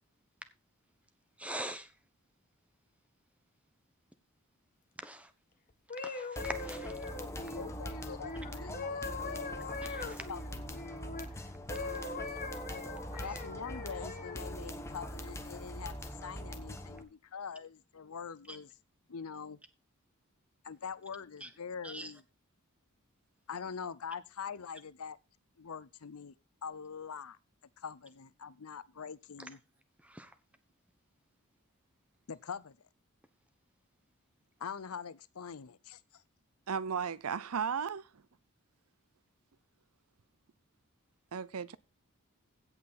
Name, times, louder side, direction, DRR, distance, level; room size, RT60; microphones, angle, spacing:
voice 1, 1.4-1.9 5.0-5.3 6.0-6.9 9.8-10.3 13.1-13.2 18.5-18.6 21.4-21.5 21.8-22.1 30.0-30.3, right 1 dB, 5° right, 1.1 m, -43 dB
sound 1, 5.7-11.3 11.7-14.6 15.2-15.5, left 3 dB, 40° left, 1.7 m, -42 dB
sound 2, 6.4-17.0, equal, 15° left, 1.2 m, -42 dB
voice 2, 7.1-9.6 10.3-10.8 13.2-18.7 19.1-19.6 20.6-22.2 23.5-25.2 25.6-26.3 26.6-27.4 27.8-29.6 32.3-32.8 34.6-36.2, left 6 dB, 85° left, 0.7 m, -44 dB
voice 3, 36.7-38.2 41.3-41.8, right 6 dB, 85° right, 0.6 m, -35 dB
16.5 x 5.7 x 4.1 m
head